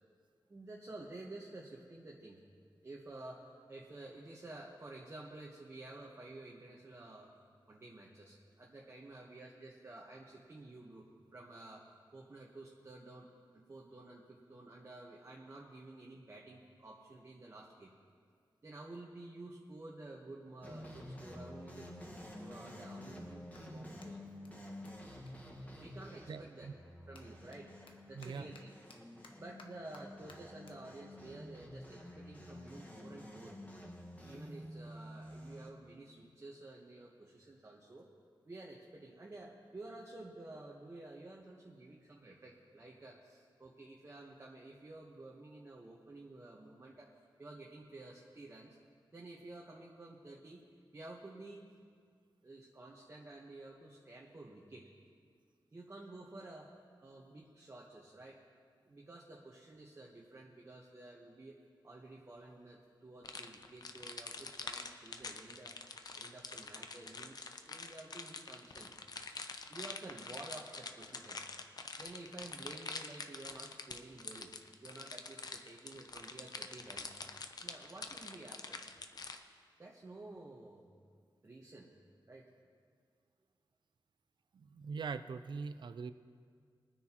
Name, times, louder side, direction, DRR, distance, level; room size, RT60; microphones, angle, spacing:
voice 1, 0.5-2.4 2.8-7.4 7.7-17.9 18.6-24.2 25.8-26.7 27.1-27.7 28.1-28.7 29.4-33.6 34.2-38.1 38.5-47.1 47.4-48.8 49.1-50.7 50.9-51.6 52.4-54.9 55.7-56.7 57.0-58.4 58.8-61.6 61.8-65.8 66.2-68.9 69.2-69.4 69.7-71.4 72.0-74.5 74.8-77.2 77.6-78.8 79.8-80.8 81.4-81.9 82.3-82.5, right 2 dB, 30° right, -3 dB, 1.1 m, -51 dB
sound 1, 20.6-35.7, left 1 dB, 20° left, 1.5 m, -50 dB
Clapping, 23.5-26.2 26.5-33.2, left 3 dB, 85° left, 1.1 m, -64 dB
voice 2, 26.3-26.7 28.1-28.5 84.5-86.1, right 5 dB, 65° right, 11 dB, 0.4 m, -42 dB
sound 2, 63.2-79.4, left 4 dB, 50° left, 0.7 m, -46 dB
23.0 x 9.7 x 3.0 m, 2.1 s
wide cardioid pair, 155°, 8 cm